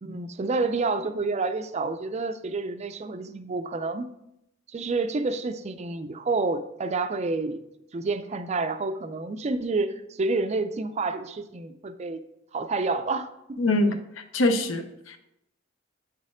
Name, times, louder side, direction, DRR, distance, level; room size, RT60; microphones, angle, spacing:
voice 1, 0.0-4.1 4.7-7.6 7.9-12.2 12.5-13.6, right 3 dB, 30° right, 10 dB, 0.4 m, -29 dB
voice 2, 13.6-14.0 14.3-15.2, left 2 dB, 65° left, 8 dB, 0.6 m, -23 dB
8.6 x 4.1 x 3.7 m, 0.83 s
head